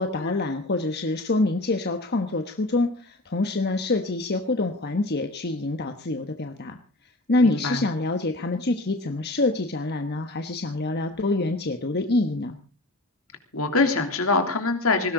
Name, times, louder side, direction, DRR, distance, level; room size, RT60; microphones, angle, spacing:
voice 1, 0.0-6.8 7.3-12.6, left 2 dB, 50° left, 6 dB, 1.2 m, -26 dB
voice 2, 7.4-7.8 13.5-15.1, left 3 dB, 75° left, 5 dB, 3.1 m, -24 dB
19.5 x 16.5 x 3.9 m, 0.37 s
head